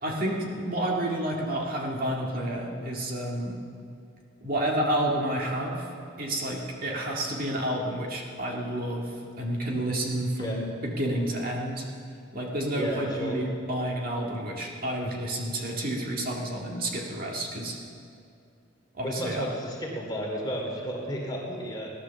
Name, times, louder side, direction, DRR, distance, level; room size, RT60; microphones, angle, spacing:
voice 1, 0.0-3.6 4.4-5.9 6.2-11.8 12.3-17.8 19.0-19.5, right 1 dB, 45° right, -1 dB, 2.0 m, -30 dB
voice 2, 12.7-13.4 19.0-21.9, equal, 20° left, -2 dB, 2.7 m, -33 dB
18.0 x 11.0 x 7.0 m, 2.4 s
head